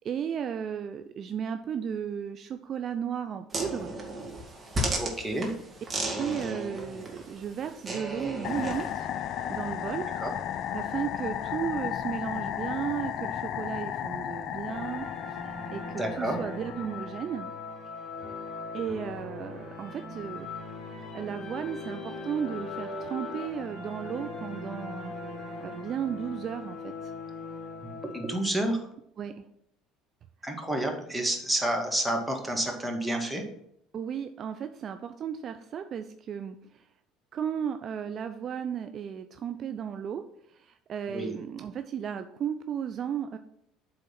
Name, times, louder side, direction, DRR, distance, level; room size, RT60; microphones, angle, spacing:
voice 1, 0.0-3.9 6.2-9.1 9.5-10.1 10.7-17.5 18.7-20.5 21.1-25.1 25.6-27.1 29.2-29.4 33.9-36.8 37.3-43.4, right 8 dB, 45° right, 8 dB, 0.5 m, -34 dB
sound 1, 3.5-8.9, right 1 dB, 25° right, 2.1 m, -34 dB
voice 2, 5.0-5.5 10.2-10.3 15.9-16.4 27.8-28.9 30.4-33.4 41.1-41.3, right 1 dB, 5° right, 1 dB, 1.9 m, -30 dB
sound 2, 8.4-17.3, left 10 dB, 50° left, 0.4 m, -34 dB
sound 3, 14.7-28.5, left 3 dB, 35° left, 2.3 m, -40 dB
8.2 x 3.8 x 5.9 m, 0.74 s
hypercardioid pair, 65°, 0 cm